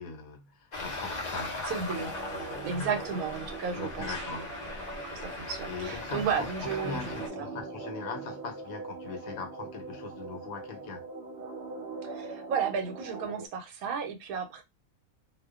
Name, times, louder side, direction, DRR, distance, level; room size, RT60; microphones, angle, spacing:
voice 1, 0.0-1.7 2.2-3.2 3.7-4.5 5.7-11.0, left 4 dB, 85° left, 1.1 m, -41 dB
Traffic noise roadway noise, 0.7-7.3, left 2 dB, 55° left, 0.4 m, -39 dB
voice 2, 1.6-2.1 2.6-4.7 5.1-7.1 7.4-7.5 12.0-14.6, right 6 dB, 85° right, 1.1 m, -33 dB
sound 1, 2.0-13.5, right 3 dB, 60° right, 0.8 m, -42 dB
2.5 x 2.1 x 2.3 m
omnidirectional pair, 1.5 m